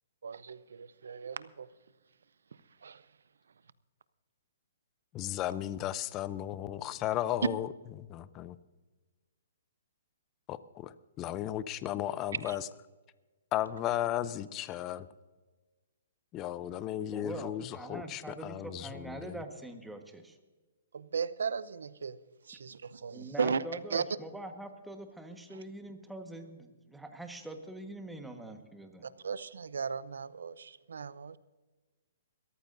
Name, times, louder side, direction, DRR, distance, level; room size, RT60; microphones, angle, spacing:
voice 1, 0.2-1.7 2.8-3.0 12.4-12.6 20.9-22.2 22.4-24.1 25.5-25.6 29.0-31.4, right 5 dB, 80° right, 0.7 m, -36 dB
voice 2, 5.1-7.7 8.0-8.6 10.5-12.6 13.5-15.1 16.3-19.4, left 12 dB, 25° left, 0.6 m, -35 dB
voice 3, 17.1-20.4 23.1-29.1, right 1 dB, 5° right, 1.4 m, -44 dB
22.0 x 14.0 x 2.6 m
hypercardioid pair, 140°, 0 cm